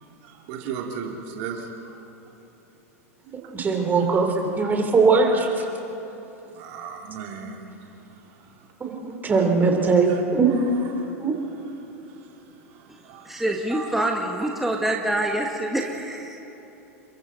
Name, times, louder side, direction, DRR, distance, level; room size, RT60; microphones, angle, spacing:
voice 1, 0.2-2.0 3.3-3.5 5.3-5.7 6.5-7.6 8.5-8.6 9.4-9.5 10.1-10.2 10.5-11.1 11.4-12.1 12.7-13.3 13.7-13.8, right 6 dB, 55° right, 1 dB, 2.7 m, -37 dB
voice 2, 3.5-5.6 8.8-11.3, right 4 dB, 20° right, 1 dB, 3.7 m, -21 dB
voice 3, 13.2-16.4, right 1 dB, 5° right, 0 dB, 1.8 m, -26 dB
29.0 x 22.5 x 4.1 m, 3.0 s
hypercardioid pair, 95°, 8 cm